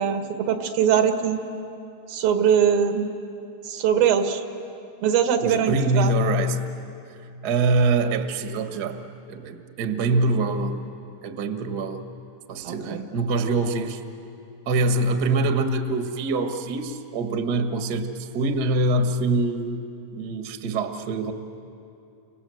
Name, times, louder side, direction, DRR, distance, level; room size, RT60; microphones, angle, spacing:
voice 1, 0.0-1.4 2.1-3.1 3.6-4.4 5.0-6.2 12.6-13.0, right 8 dB, 90° right, 6 dB, 3.3 m, -22 dB
voice 2, 5.4-6.6 7.4-9.0 9.3-10.8 11.2-12.0 12.5-14.0 14.7-19.9 20.1-21.3, right 2 dB, 60° right, 6 dB, 1.0 m, -24 dB
29.5 x 25.5 x 7.8 m, 2.6 s
omnidirectional pair, 4.0 m